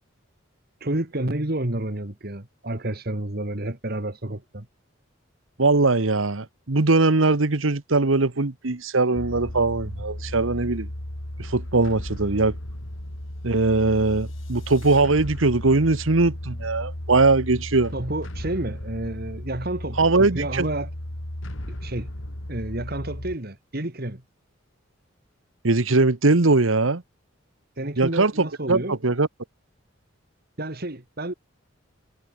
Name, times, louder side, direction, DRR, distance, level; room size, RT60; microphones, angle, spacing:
voice 1, 0.8-4.7 17.9-20.9 21.8-22.1 22.5-24.2 27.8-29.0 30.6-31.3, right 1 dB, 50° right, 2.2 m, -30 dB
voice 2, 5.6-10.9 11.4-12.5 13.4-17.9 20.0-20.7 25.6-27.0 28.0-29.3, right 3 dB, 90° right, 1.3 m, -21 dB
sound 1, 9.1-23.4, left 1 dB, 80° left, 3.7 m, -35 dB
head